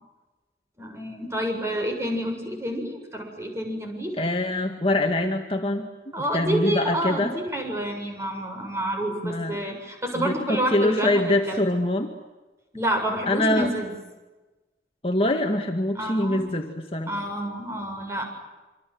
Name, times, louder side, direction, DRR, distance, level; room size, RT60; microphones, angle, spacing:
voice 1, 0.8-4.1 6.1-11.6 12.7-13.9 16.0-16.5 17.1-18.3, right 1 dB, 15° right, 3 dB, 7.3 m, -29 dB
voice 2, 4.2-5.9 6.3-7.4 9.2-9.6 10.1-12.1 13.3-13.7 15.0-17.1, left 1 dB, 30° left, 3 dB, 2.0 m, -24 dB
27.0 x 26.0 x 8.0 m, 1.1 s
head